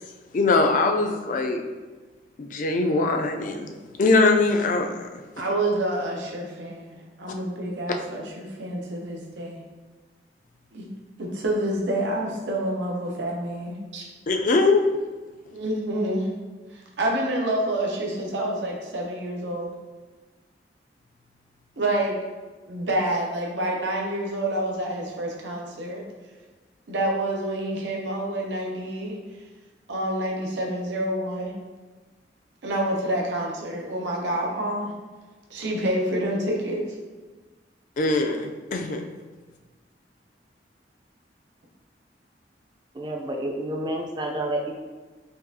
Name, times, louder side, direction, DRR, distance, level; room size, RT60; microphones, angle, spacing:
voice 1, 0.3-1.6 2.4-3.7 4.0-5.1 14.3-14.8 38.0-39.0, left 3 dB, 45° left, 4 dB, 0.4 m, -22 dB
voice 2, 5.4-9.6 10.7-10.9 11.2-14.0 15.5-16.3 16.7-19.7 21.8-22.2 22.7-26.0 26.9-29.2 29.9-31.5 32.6-34.9 35.5-36.8, right 1 dB, 85° right, -1 dB, 0.7 m, -28 dB
voice 3, 42.9-44.7, right 1 dB, 25° right, 2 dB, 0.4 m, -29 dB
5.2 x 2.4 x 2.7 m, 1.3 s
head